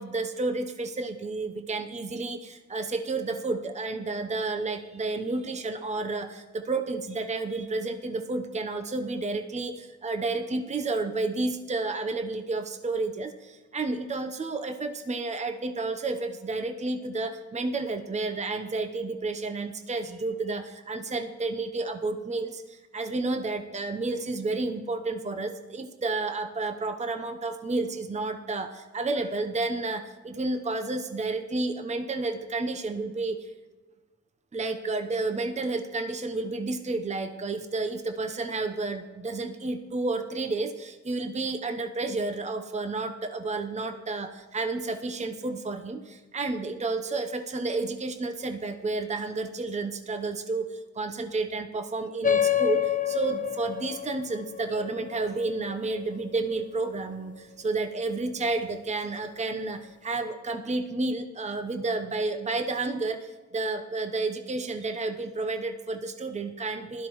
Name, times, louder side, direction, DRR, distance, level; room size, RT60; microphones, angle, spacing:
voice 1, 0.0-33.5 34.5-67.1, right 3 dB, 20° right, 7 dB, 0.9 m, -31 dB
sound 1, 52.2-57.2, left 10 dB, 25° left, 0.9 m, -29 dB
16.0 x 12.5 x 3.2 m, 1.2 s
supercardioid pair, 60°, 33 cm